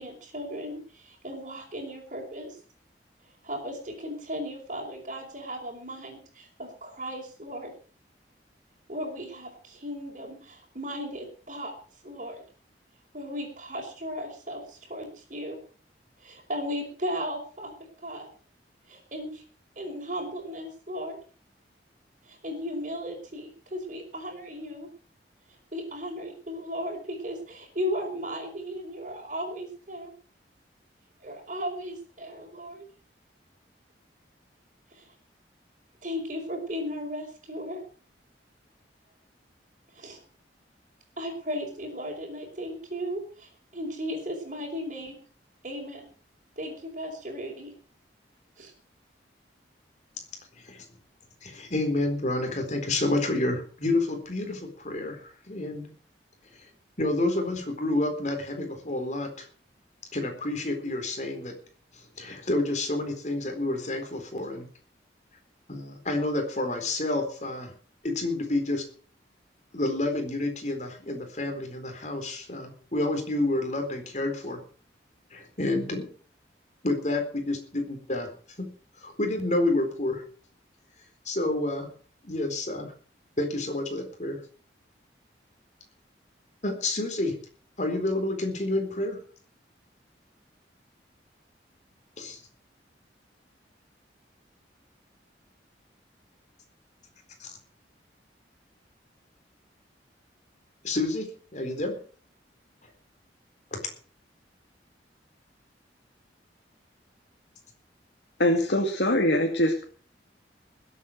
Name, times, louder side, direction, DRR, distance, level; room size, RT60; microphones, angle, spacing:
voice 1, 0.0-2.6 3.4-7.7 8.9-12.4 13.1-15.6 16.2-17.7 18.0-18.3 18.9-19.4 19.7-21.2 22.2-24.9 25.7-30.1 31.2-32.8 34.9-35.1 36.0-37.8 39.9-40.2 41.2-45.1 45.6-46.0 46.6-47.7 48.6-48.7, equal, 40° right, -4 dB, 4.5 m, -36 dB
voice 2, 51.4-55.9 57.0-59.4 60.1-61.6 61.9-64.7 65.7-67.7 68.0-68.8 69.7-74.6 75.3-76.1 76.8-78.3 78.6-78.7 79.0-80.2 81.3-81.9 82.2-82.9 83.4-84.4 86.6-87.4 87.8-89.2 92.2-92.4 97.4-97.5 100.8-102.0 103.7-103.8, left 2 dB, 40° left, 5 dB, 4.1 m, -29 dB
voice 3, 108.4-109.8, left 1 dB, 70° left, 2 dB, 2.2 m, -23 dB
20.0 x 8.4 x 6.4 m, 0.42 s
head